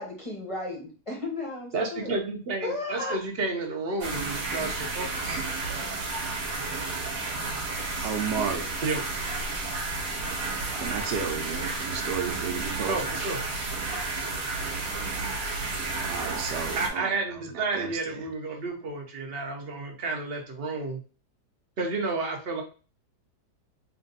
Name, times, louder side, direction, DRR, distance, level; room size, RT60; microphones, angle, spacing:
voice 1, 0.0-2.1 2.6-3.2, left 2 dB, 25° left, -3 dB, 0.9 m, -34 dB
voice 2, 1.7-5.4 8.8-9.0 12.9-13.4 16.8-21.0 21.8-22.6, right 3 dB, 45° right, 1 dB, 0.9 m, -31 dB
sound 1, 4.0-16.9, right 3 dB, 60° right, 1.3 m, -32 dB
voice 3, 8.0-8.7 10.8-13.0 16.1-17.1 17.5-18.2, right 6 dB, 80° right, 4 dB, 1.3 m, -32 dB
3.4 x 2.5 x 3.9 m, 0.36 s
omnidirectional pair, 1.8 m